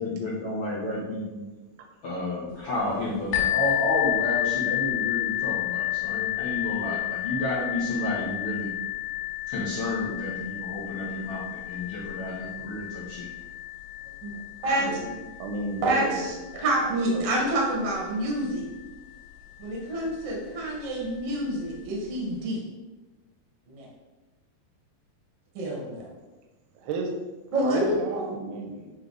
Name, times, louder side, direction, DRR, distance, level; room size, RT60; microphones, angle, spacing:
voice 1, 0.0-1.4 2.0-8.7 9.5-13.3, left 1 dB, 75° left, -9 dB, 1.3 m, -31 dB
sound 1, 3.3-18.9 19.6-19.7 20.3-20.4, left 16 dB, 90° left, 2.8 m, -31 dB
voice 2, 14.8-15.1 15.4-16.3 17.1-17.3 26.8-27.1 27.6-28.9, right 3 dB, 80° right, 3 dB, 2.7 m, -33 dB
voice 3, 15.8-18.7 19.6-22.6 23.7-23.9 25.5-26.1 27.5-28.3, right 1 dB, 55° right, -3 dB, 1.2 m, -27 dB
8.7 x 3.2 x 4.0 m, 1.2 s
omnidirectional pair, 4.5 m